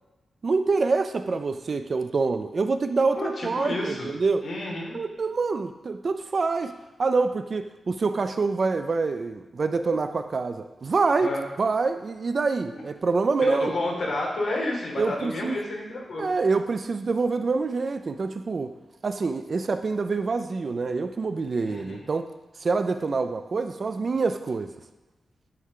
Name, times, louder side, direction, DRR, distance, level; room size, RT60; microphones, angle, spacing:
voice 1, 0.4-4.4 4.9-6.7 7.0-13.7 15.0-15.6 16.2-18.7 19.0-22.3 22.6-24.7, right 4 dB, 50° right, 9 dB, 0.3 m, -26 dB
voice 2, 3.2-4.1 4.4-5.0 11.2-11.4 12.7-12.8 13.4-16.2 21.6-22.0, left 1 dB, 55° left, -2 dB, 1.8 m, -30 dB
9.2 x 3.4 x 3.7 m, 1.1 s
cardioid pair, 85°, 0 cm